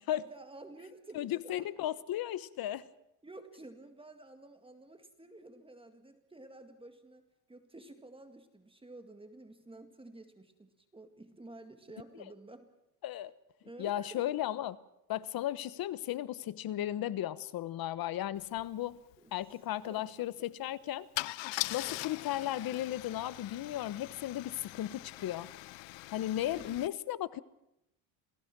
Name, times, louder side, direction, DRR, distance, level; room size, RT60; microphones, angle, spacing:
voice 1, 0.1-1.7 3.2-7.2 7.5-12.7 13.6-14.4 19.2-19.3 19.9-20.5 21.8-22.0 26.5-26.8, right 2 dB, 10° right, 7 dB, 2.0 m, -51 dB
voice 2, 1.1-2.9 13.0-13.3 13.8-14.7 15.1-19.0 19.3-21.1 21.7-25.5 26.1-27.4, left 13 dB, 50° left, 17 dB, 1.1 m, -35 dB
Car / Engine starting / Idling, 18.5-18.6 18.9-19.2 21.2-26.9, left 20 dB, 75° left, 0.8 m, -41 dB
28.0 x 18.0 x 6.1 m, 0.84 s
cardioid pair, 115°, 45 cm